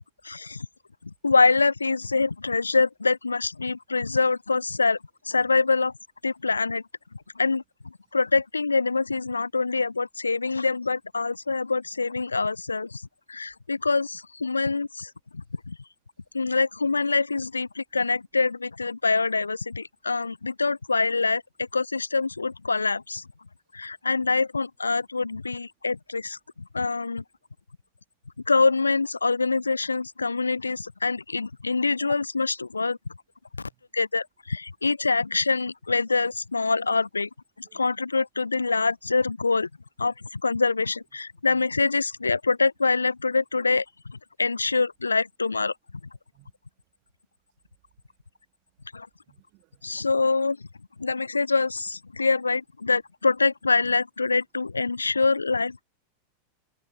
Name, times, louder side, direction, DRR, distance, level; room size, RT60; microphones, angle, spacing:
voice 1, 0.2-0.7 1.0-5.0 5.3-5.9 6.2-6.8 7.4-7.6 8.1-13.0 13.3-15.8 16.3-23.3 23.7-26.4 26.7-27.2 28.5-33.0 33.6-37.3 37.6-39.7 40.0-45.7 48.9-49.1 49.8-50.6 51.0-55.8, left 4 dB, 80° left, 0.6 m, -25 dB
voice 2, 49.3-50.0 51.0-51.2, right 26 dB, 40° right, 2.3 m, -60 dB
figure-of-eight pair, 90°, 0 cm